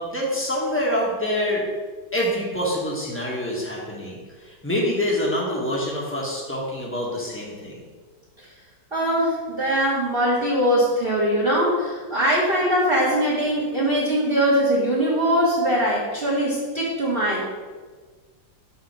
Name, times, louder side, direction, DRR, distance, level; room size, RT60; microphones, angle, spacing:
voice 1, 0.0-1.7 2.1-4.2 4.4-7.8, equal, 10° left, -4 dB, 1.1 m, -26 dB
voice 2, 8.9-17.5, equal, 30° right, -6 dB, 1.4 m, -21 dB
6.1 x 3.8 x 6.0 m, 1.4 s
omnidirectional pair, 2.1 m